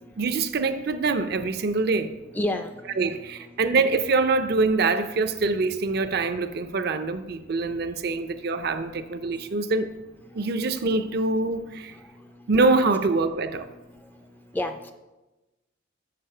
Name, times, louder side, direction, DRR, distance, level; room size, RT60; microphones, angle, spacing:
voice 1, 0.2-2.1 3.0-9.9 10.3-11.9 12.5-13.7, right 3 dB, 55° right, 0.5 m, -24 dB
voice 2, 2.3-3.4 9.4-9.5 12.2-12.3 14.5-14.9, left 1 dB, 10° left, 0.3 m, -32 dB
6.7 x 6.0 x 5.5 m
head